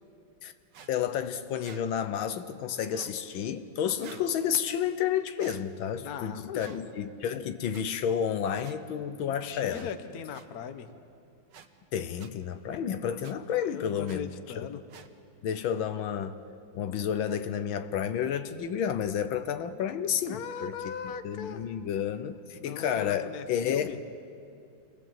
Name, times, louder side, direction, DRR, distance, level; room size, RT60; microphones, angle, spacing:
sound 1, 0.7-0.9 1.6-1.8 2.9-3.2 4.0-4.3 5.4-5.6 6.6-6.8 7.7-7.8 8.6-8.8 9.7-9.9 10.3-10.5 11.5-11.7 12.2-12.3 13.2-13.3 14.1-14.2 14.9-15.1, right 7 dB, 65° right, 1.6 m, -49 dB
voice 1, 0.9-9.9 11.9-14.3 14.6-14.7 15.4-16.4 16.7-20.9 21.2-24.0, left 8 dB, 80° left, 1.6 m, -31 dB
voice 2, 6.0-6.8 9.1-10.9 13.6-14.8 20.3-21.6 22.6-24.0, left 7 dB, 55° left, 1.3 m, -39 dB
28.0 x 19.0 x 7.4 m
omnidirectional pair, 2.2 m